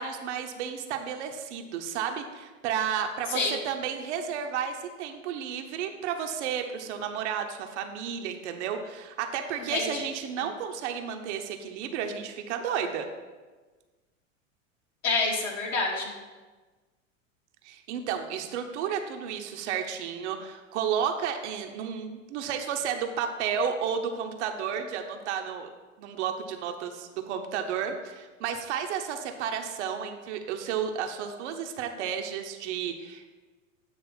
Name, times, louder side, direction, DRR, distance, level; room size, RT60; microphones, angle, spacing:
voice 1, 0.0-13.1 17.6-25.7 26.0-33.3, right 7 dB, 60° right, 5 dB, 0.9 m, -32 dB
voice 2, 9.7-10.0 15.0-16.1, left 3 dB, 45° left, -1 dB, 2.1 m, -27 dB
8.8 x 3.3 x 6.0 m, 1.3 s
hypercardioid pair, 90°, 39 cm